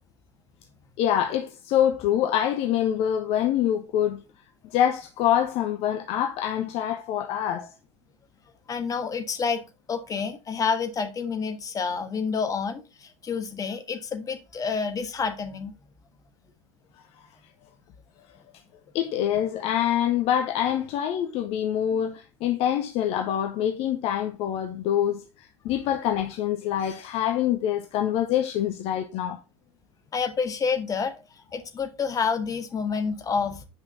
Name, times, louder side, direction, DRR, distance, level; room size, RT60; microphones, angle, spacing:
voice 1, 1.0-4.2 4.6-7.7 18.9-29.4, left 10 dB, 45° left, 0.8 m, -25 dB
voice 2, 8.7-9.6 9.9-15.7 30.1-31.2 31.5-33.6, left 5 dB, 25° left, 1.4 m, -28 dB
8.4 x 5.5 x 3.9 m
figure-of-eight pair, 75°, 15 cm